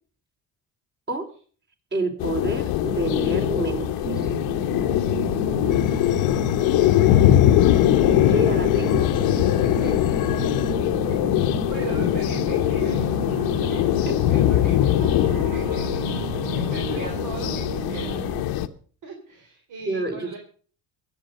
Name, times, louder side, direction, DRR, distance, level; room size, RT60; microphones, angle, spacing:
voice 1, 1.9-4.3 8.2-9.1 14.1-14.2 19.9-20.4, right 2 dB, 30° right, 4 dB, 4.0 m, -28 dB
sound 1, 2.2-18.7, left 13 dB, 90° left, 1.0 m, -22 dB
sound 2, 4.0-18.4, right 13 dB, 75° right, 1.1 m, -33 dB
voice 2, 5.4-5.8 9.8-9.9 11.1-11.2 11.6-13.1 13.7-15.1 15.5-18.3 19.0-20.4, right 4 dB, 60° right, 1 dB, 3.6 m, -39 dB
sound 3, 5.7-10.7, left 11 dB, 60° left, 1.1 m, -31 dB
22.5 x 8.5 x 5.3 m, 0.43 s
cardioid pair, 100°, 35 cm